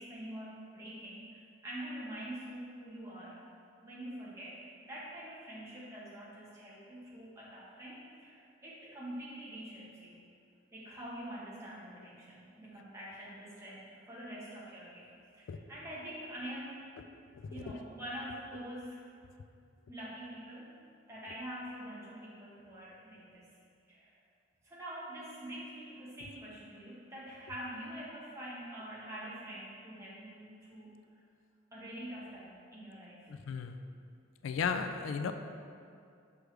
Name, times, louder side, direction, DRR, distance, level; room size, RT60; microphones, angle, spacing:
voice 1, 0.0-3.4 3.8-10.2 10.7-15.1 15.3-16.9 17.4-19.1 19.9-20.7 21.1-23.5 23.9-24.2 24.6-30.9 31.7-33.3, right 1 dB, 15° right, -8 dB, 1.3 m, -45 dB
voice 2, 17.3-17.7 33.3-33.8 34.4-35.3, left 6 dB, 90° left, 8 dB, 0.3 m, -35 dB
6.2 x 4.8 x 3.3 m, 2.4 s
head